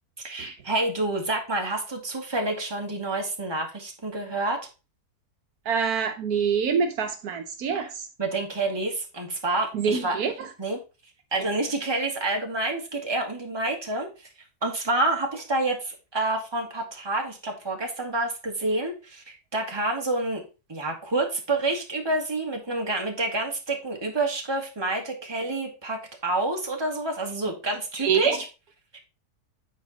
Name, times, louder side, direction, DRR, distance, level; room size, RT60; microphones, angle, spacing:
voice 1, 0.2-4.6 8.2-10.1 10.6-10.8 11.3-14.1 14.6-20.4 20.7-28.3 28.9-29.0, right 2 dB, 15° right, 1.5 m, -28 dB
voice 2, 5.6-8.1 9.7-10.5 11.4-11.5 28.0-28.4, right 6 dB, 70° right, 1.2 m, -26 dB
9.1 x 4.5 x 4.0 m
omnidirectional pair, 1.7 m